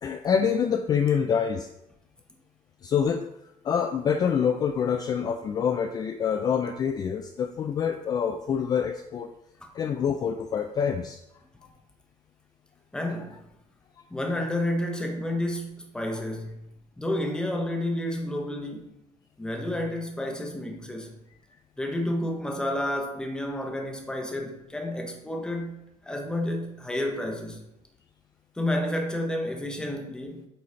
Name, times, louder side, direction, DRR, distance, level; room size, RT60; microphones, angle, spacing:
voice 1, 0.0-1.7 2.8-3.3 3.6-9.3 9.7-11.2, left 7 dB, 30° left, 0.3 m, -26 dB
voice 2, 12.9-13.4 14.1-16.6 17.0-18.9 19.4-21.1 21.8-27.6 28.6-30.5, left 1 dB, 5° left, 0.8 m, -30 dB
8.4 x 4.1 x 3.2 m
cardioid pair, 165°, 13 cm